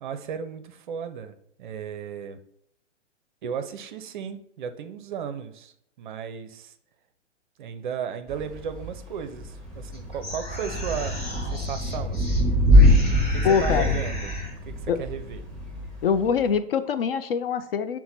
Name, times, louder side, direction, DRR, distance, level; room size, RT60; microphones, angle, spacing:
voice 1, 0.0-2.4 3.4-6.7 7.6-11.1 11.5-12.5 13.3-14.3 14.7-15.5, right 7 dB, 40° right, 9 dB, 0.5 m, -35 dB
Thunder / Rain, 8.3-16.5, left 1 dB, ahead, 1.0 m, -23 dB
sound 1, 9.9-12.4 12.7-14.6, left 1 dB, 20° left, 1.9 m, -37 dB
voice 2, 13.4-14.0 14.9-15.0 16.0-18.0, left 7 dB, 50° left, 11 dB, 0.4 m, -24 dB
5.8 x 2.1 x 4.0 m, 0.72 s
figure-of-eight pair, 120°, 37 cm